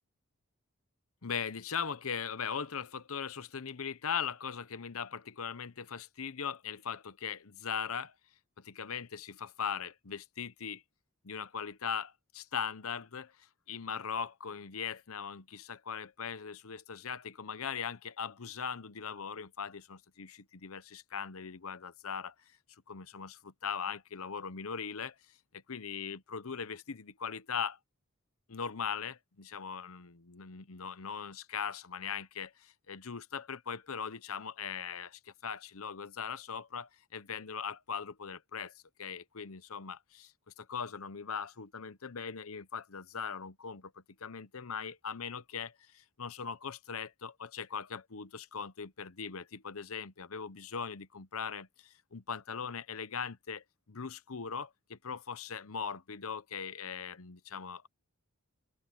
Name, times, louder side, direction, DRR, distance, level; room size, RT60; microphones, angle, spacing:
voice 1, 1.2-8.1 8.6-10.8 11.2-22.3 22.9-25.1 25.7-27.8 28.5-38.7 39.0-40.3 40.6-57.9, left 6 dB, 80° left, 0.9 m, -40 dB
open air
head